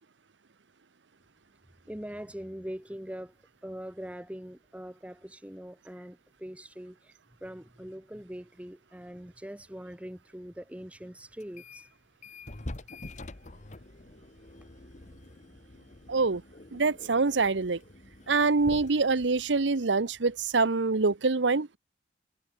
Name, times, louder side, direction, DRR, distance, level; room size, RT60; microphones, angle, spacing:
voice 1, 1.9-3.3 3.6-7.1 7.4-11.9, equal, 5° right, 1.1 m, -42 dB
sound 1, 11.4-11.9 12.2-20.7, left 2 dB, 40° left, 1.3 m, -46 dB
voice 2, 16.1-16.4 16.7-17.8 18.3-21.8, right 4 dB, 85° right, 0.9 m, -25 dB
head